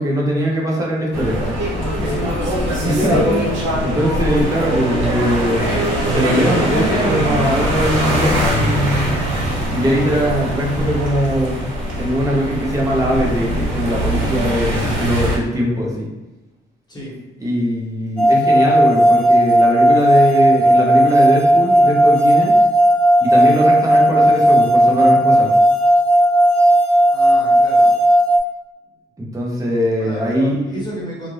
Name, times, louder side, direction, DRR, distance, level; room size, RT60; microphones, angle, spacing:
voice 1, 0.0-1.4 2.8-9.1 9.7-11.7 12.0-16.1 17.4-22.5 23.2-25.5 29.2-30.6, equal, 15° right, -3 dB, 0.9 m, -20 dB
sound 1, 1.1-15.4, equal, 75° right, 0.9 m, -21 dB
voice 2, 1.7-2.3 16.9-17.2 27.1-27.9 30.0-31.3, equal, 20° left, -6 dB, 1.3 m, -30 dB
sound 2, 18.2-28.4, right 1 dB, 5° left, 0.5 m, -13 dB
2.5 x 2.4 x 3.3 m, 1.0 s
cardioid pair, 90°, 20 cm